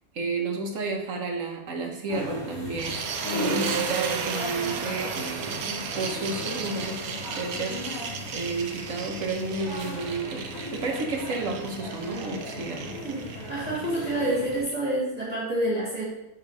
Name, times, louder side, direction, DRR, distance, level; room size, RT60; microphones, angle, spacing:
voice 1, 0.1-3.0 3.4-7.9 8.3-13.0, right 3 dB, 65° right, 2 dB, 1.4 m, -32 dB
sound 1, 2.1-14.6, left 1 dB, 15° left, 2.9 m, -37 dB
sound 2, 2.8-14.7, right 6 dB, 80° right, 1.2 m, -35 dB
voice 2, 13.5-16.0, right 1 dB, 25° right, -8 dB, 2.2 m, -28 dB
8.0 x 3.8 x 5.3 m, 0.90 s
omnidirectional pair, 1.5 m